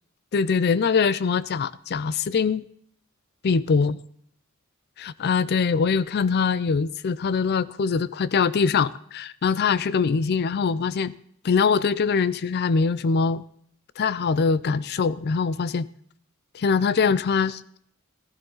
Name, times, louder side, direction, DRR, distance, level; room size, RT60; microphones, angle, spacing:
voice 1, 0.3-2.7 3.4-4.0 5.0-11.1 11.4-13.4 14.0-15.9 16.5-17.6, left 5 dB, 50° left, 0.4 m, -23 dB
14.5 x 13.5 x 3.9 m
head